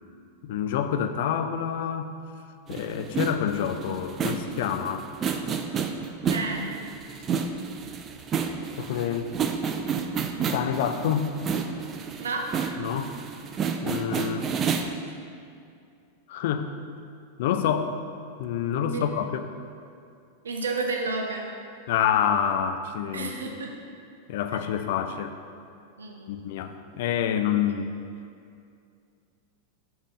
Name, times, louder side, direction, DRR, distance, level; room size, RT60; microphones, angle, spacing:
voice 1, 0.4-2.1 2.7-5.1 8.8-9.4 10.5-11.3 12.8-13.1 13.8-14.5 16.3-16.7 17.4-17.9 18.4-19.5 21.9-23.5 24.3-25.3 26.3-27.9, left 8 dB, 55° left, 8 dB, 0.3 m, -27 dB
sound 1, 2.7-14.9, right 6 dB, 25° right, 0.3 m, -30 dB
voice 2, 6.3-6.8 12.2-12.5 18.9-19.0 20.4-21.4 23.1-23.7 26.0-26.4, right 3 dB, 70° right, 2 dB, 0.7 m, -31 dB
5.0 x 3.5 x 5.5 m, 2.4 s
figure-of-eight pair, 90°, 0 cm